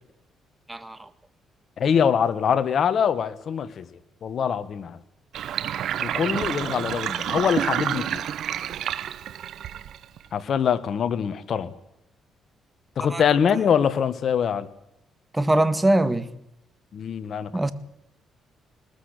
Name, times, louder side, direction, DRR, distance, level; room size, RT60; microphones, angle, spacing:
voice 1, 0.7-1.1 13.0-13.2 15.3-16.3 17.5-17.7, right 1 dB, 15° right, 1.8 m, -22 dB
voice 2, 1.8-3.9 4.2-5.0 6.0-8.2 10.3-11.7 13.0-14.7 16.9-17.7, left 7 dB, 60° left, 1.6 m, -24 dB
Sink (filling or washing), 5.3-10.3, right 10 dB, 75° right, 1.0 m, -29 dB
21.0 x 20.0 x 8.3 m
cardioid pair, 90°, 0 cm